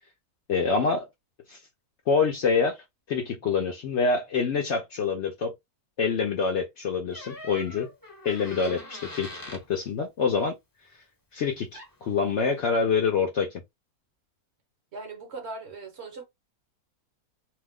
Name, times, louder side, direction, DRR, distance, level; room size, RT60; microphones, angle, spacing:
voice 1, 0.5-1.1 1.5-1.6 2.1-5.5 6.0-7.9 8.2-10.5 11.3-13.6, left 5 dB, 65° left, 0.7 m, -26 dB
Door, 7.1-9.7 11.5-11.6 11.7-12.1, left 1 dB, 20° left, 0.7 m, -43 dB
voice 2, 14.9-16.2, right 3 dB, 50° right, 1.1 m, -39 dB
2.8 x 2.0 x 3.5 m
omnidirectional pair, 1.6 m